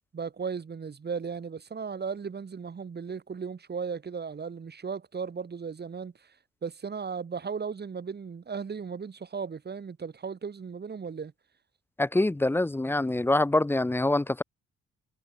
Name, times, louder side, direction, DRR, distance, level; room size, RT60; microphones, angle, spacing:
voice 1, 0.1-6.3 6.6-11.3, right 5 dB, 35° right, 1.8 m, -36 dB
voice 2, 12.0-14.4, left 2 dB, 10° left, 0.5 m, -25 dB
cardioid pair, 90°, 30 cm